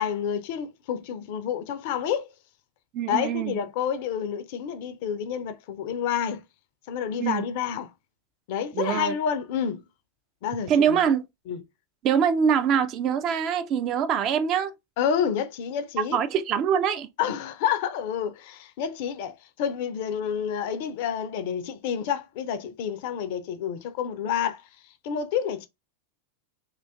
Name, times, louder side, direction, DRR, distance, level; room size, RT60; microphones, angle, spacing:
voice 1, 0.0-2.3 3.1-6.4 6.9-7.9 8.5-9.8 10.4-11.0 11.5-11.6 15.0-16.2 17.2-24.6 25.0-25.7, left 8 dB, 50° left, 0.4 m, -29 dB
voice 2, 2.9-3.6 7.2-7.5 8.7-9.1 10.7-11.2 12.0-14.7 16.0-17.1, right 8 dB, 35° right, 0.3 m, -24 dB
2.4 x 2.3 x 3.2 m
figure-of-eight pair, 90°, 0 cm